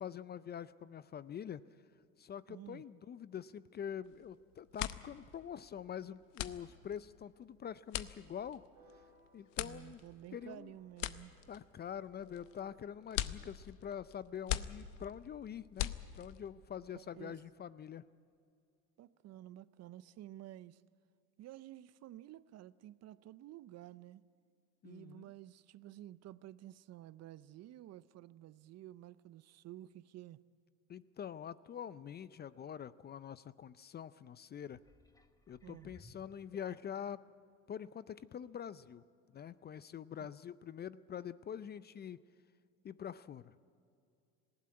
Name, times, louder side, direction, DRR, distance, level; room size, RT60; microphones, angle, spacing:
voice 1, 0.0-1.6 2.2-8.6 9.3-10.0 10.3-10.7 11.5-18.0 24.8-25.2 30.9-34.8 35.5-37.3 37.7-39.0 39.3-42.2 42.8-43.5, left 8 dB, 30° left, 0.4 m, -45 dB
voice 2, 2.5-2.8 9.6-11.4 16.9-17.4 19.0-20.8 21.4-24.2 24.8-30.4 35.6-35.9, right 13 dB, 45° right, 0.6 m, -52 dB
sound 1, 4.1-4.3 4.6-16.5, left 14 dB, 90° left, 0.8 m, -42 dB
sound 2, 8.7-13.1, right 2 dB, 85° right, 4.0 m, -68 dB
sound 3, 34.7-37.3 37.9-38.0, left 1 dB, 10° left, 1.2 m, -62 dB
19.0 x 16.0 x 9.6 m
supercardioid pair, 95°, 36 cm